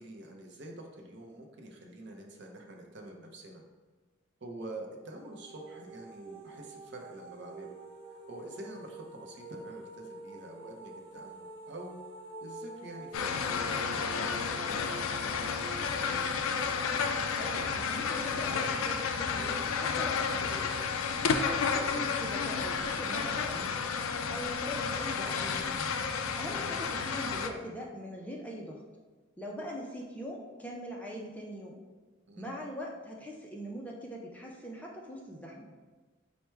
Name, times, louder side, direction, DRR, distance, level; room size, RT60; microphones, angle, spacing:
voice 1, 0.0-3.6 4.4-7.8 8.1-12.0 12.4-14.9 26.6-26.9 32.3-32.5, right 1 dB, 55° right, 1 dB, 0.6 m, -46 dB
sound 1, 5.0-17.9, right 2 dB, 25° right, 1.0 m, -48 dB
sound 2, 13.1-27.5, left 5 dB, 85° left, 0.4 m, -31 dB
voice 2, 17.3-20.7 21.3-23.7 24.3-25.8 26.4-28.8 29.4-31.8 32.4-35.7, equal, 5° left, -2 dB, 0.4 m, -42 dB
4.5 x 2.1 x 4.4 m, 1.3 s
head